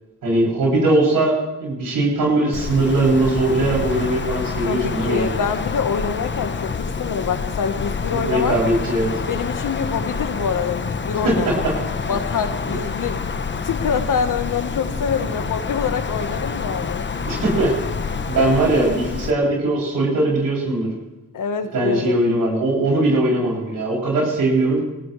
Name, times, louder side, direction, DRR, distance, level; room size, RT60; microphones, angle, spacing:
voice 1, 0.2-5.3 8.1-9.2 11.2-11.7 12.0-12.1 12.7-12.8 17.2-17.7 18.3-20.9 21.7-24.8, right 2 dB, 90° right, -3 dB, 7.7 m, -20 dB
Wind, 2.5-19.3, left 5 dB, 35° left, 1.1 m, -27 dB
voice 2, 4.7-8.6 9.3-11.6 12.1-13.2 13.5-17.1 21.3-22.2, left 6 dB, 70° left, 8 dB, 1.5 m, -25 dB
21.5 x 18.0 x 3.4 m, 1.1 s
cardioid pair, 85°, 33 cm